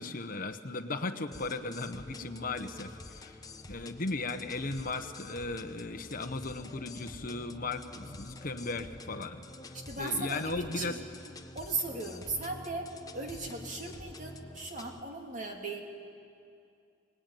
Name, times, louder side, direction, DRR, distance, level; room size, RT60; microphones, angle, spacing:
voice 1, 0.0-3.4 3.7-10.9, left 3 dB, 45° left, 8 dB, 1.0 m, -37 dB
sound 1, 1.3-15.0, left 2 dB, 20° left, 0.8 m, -48 dB
voice 2, 9.7-11.0 11.5-12.9 13.1-15.8, right 3 dB, 40° right, 1 dB, 2.9 m, -37 dB
24.5 x 20.0 x 9.2 m, 2.5 s
head